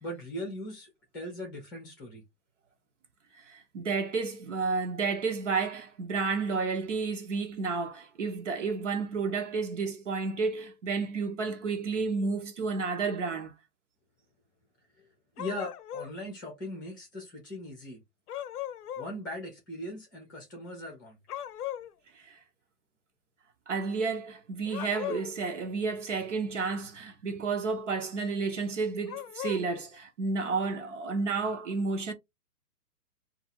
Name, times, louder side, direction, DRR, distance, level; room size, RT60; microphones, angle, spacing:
voice 1, 0.0-2.2 15.0-15.1 15.4-18.0 19.0-21.2, left 1 dB, 15° left, 0.7 m, -39 dB
voice 2, 3.4-13.5 22.1-22.4 23.7-32.1, right 4 dB, 50° right, 0.6 m, -31 dB
sound 1, 15.4-16.2 18.3-19.1 21.3-21.9 24.6-25.4 29.1-29.6, left 11 dB, 75° left, 0.6 m, -38 dB
2.5 x 2.4 x 2.9 m
hypercardioid pair, 175°, 46 cm